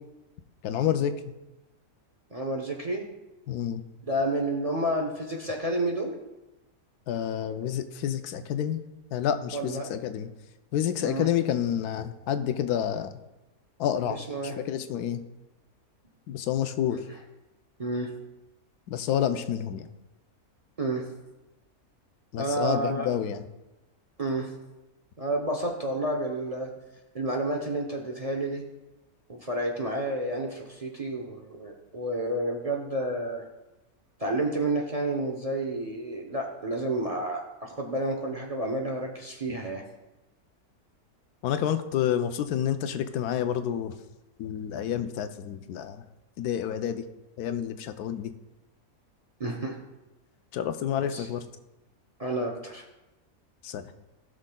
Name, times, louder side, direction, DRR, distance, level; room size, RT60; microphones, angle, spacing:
voice 1, 0.6-1.1 3.5-3.8 7.1-8.8 9.1-10.3 10.7-13.2 13.8-14.2 14.6-15.2 16.3-17.0 18.9-19.9 22.3-23.4 41.4-43.9 44.4-46.0 46.4-47.0 47.4-48.3 50.5-51.5 53.6-53.8, left 9 dB, 85° left, 9 dB, 1.1 m, -29 dB
voice 2, 2.3-3.0 4.0-6.1 9.5-9.9 11.0-11.3 14.1-14.6 16.9-17.0 17.8-18.1 20.8-21.1 22.4-23.1 24.2-24.5 25.2-26.7 27.1-28.6 29.3-33.4 34.2-39.8 49.4-49.8 51.0-51.3 52.2-52.8, right 1 dB, 30° right, 1 dB, 0.7 m, -30 dB
16.5 x 6.3 x 2.2 m, 1.0 s
omnidirectional pair, 1.6 m